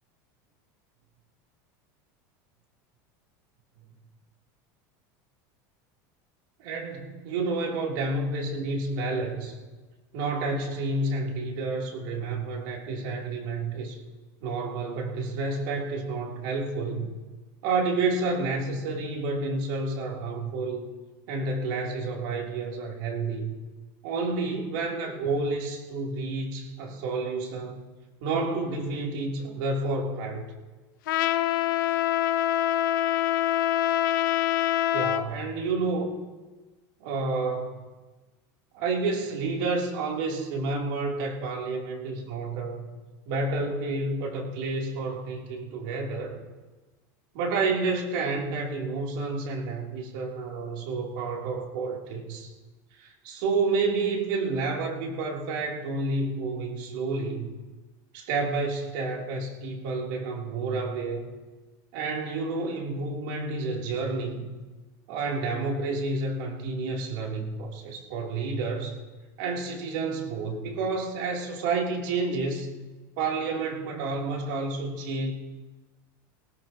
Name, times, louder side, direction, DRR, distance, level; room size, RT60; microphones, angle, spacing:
voice 1, 6.6-9.6 10.1-14.0 14.4-17.1 17.6-20.9 21.3-23.5 24.0-27.8 28.2-30.4 34.9-36.1 37.0-37.8 38.7-42.9 43.2-46.4 47.3-52.5 53.0-57.5 58.1-61.3 61.9-64.5 65.1-68.9 69.4-72.8 73.2-75.3, right 3 dB, 70° right, -1 dB, 3.2 m, -30 dB
Trumpet, 31.1-35.3, left 13 dB, 85° left, 0.8 m, -25 dB
20.0 x 17.5 x 2.9 m, 1.2 s
supercardioid pair, 140°, 11 cm